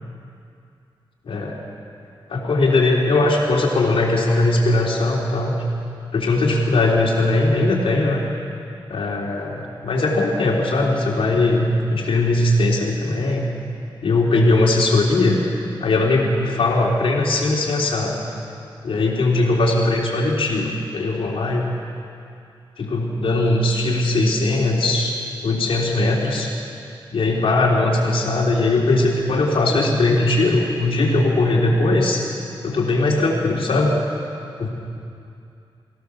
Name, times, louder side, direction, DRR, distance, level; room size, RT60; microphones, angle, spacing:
voice 1, 1.3-1.6 2.3-5.5 6.1-8.2 8.9-13.5 14.0-15.4 15.8-18.2 18.8-21.7 22.8-25.1 25.4-26.5 27.1-32.2 32.6-33.9 34.6-34.7, left 2 dB, 85° left, -2 dB, 3.5 m, -19 dB
23.5 x 16.5 x 7.0 m, 2.5 s
wide cardioid pair, 170°, 9 cm